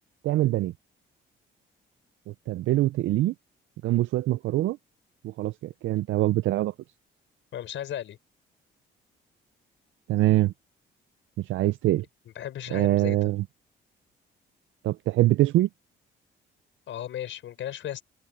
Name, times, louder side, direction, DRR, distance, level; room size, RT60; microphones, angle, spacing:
voice 1, 0.2-0.7 2.5-3.3 3.8-4.8 5.2-6.7 10.1-10.5 11.4-12.1 12.7-13.4 14.8-15.7, right 16 dB, 75° right, 0.5 m, -24 dB
voice 2, 7.5-8.2 12.4-13.3 16.9-18.0, left 11 dB, 75° left, 6.1 m, -35 dB
open air
cardioid pair, 90°, 20 cm